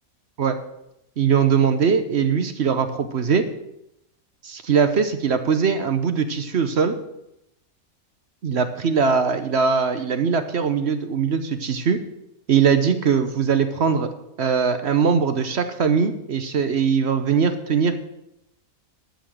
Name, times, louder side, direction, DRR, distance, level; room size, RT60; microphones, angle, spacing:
voice 1, 1.2-3.4 4.4-6.9 8.4-12.0 12.5-14.1 14.4-17.9, right 6 dB, 50° right, 8 dB, 1.0 m, -21 dB
11.5 x 6.3 x 7.8 m, 0.84 s
omnidirectional pair, 1.5 m